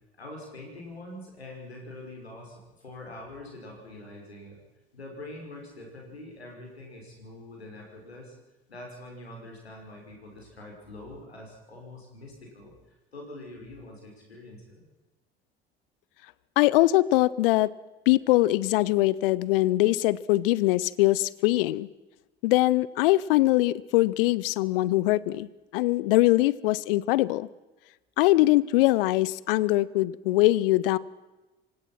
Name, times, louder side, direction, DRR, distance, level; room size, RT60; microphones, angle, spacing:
voice 1, 0.2-4.6 4.9-8.3 8.7-14.9, left 1 dB, 85° left, 0 dB, 6.0 m, -44 dB
voice 2, 16.6-17.7 18.1-21.9 22.4-25.5 25.7-27.5 28.2-31.0, left 18 dB, 60° left, 21 dB, 0.8 m, -22 dB
27.0 x 16.5 x 6.1 m, 1.1 s
figure-of-eight pair, 60°, 31 cm